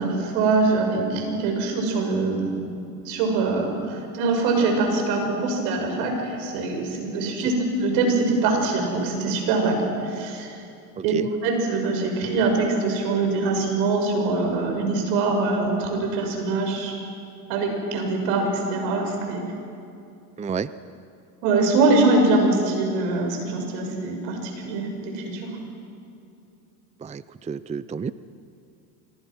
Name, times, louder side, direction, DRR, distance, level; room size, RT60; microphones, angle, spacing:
voice 1, 0.0-2.6 3.0-10.6 11.0-17.0 17.5-19.5 21.4-25.5, right 3 dB, 80° right, 3 dB, 6.1 m, -23 dB
voice 2, 20.4-20.7 27.0-28.1, right 6 dB, 15° right, 15 dB, 0.6 m, -30 dB
26.5 x 23.5 x 6.2 m, 2.6 s
supercardioid pair, 85°, 49 cm